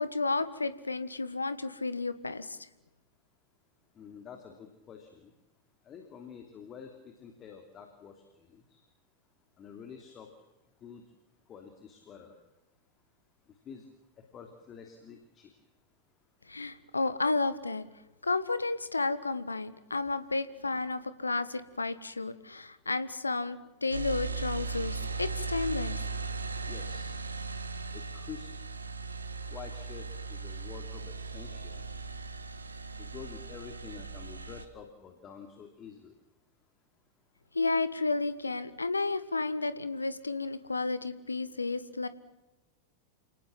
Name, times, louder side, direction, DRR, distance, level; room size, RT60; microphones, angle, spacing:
voice 1, 0.0-2.6 16.5-17.8 18.2-26.0 37.5-42.1, left 3 dB, 80° left, 14 dB, 1.4 m, -32 dB
voice 2, 4.0-5.3 5.8-8.8 9.6-10.3 10.8-11.0 11.5-12.3 13.6-13.9 14.2-15.5 26.7-27.2 27.9-28.5 29.5-31.8 33.0-36.1, left 7 dB, 30° left, 5 dB, 3.0 m, -48 dB
sound 1, 23.9-34.6, right 4 dB, 75° right, 1.8 m, -38 dB
29.5 x 19.0 x 7.5 m, 1.0 s
figure-of-eight pair, 90°, 0 cm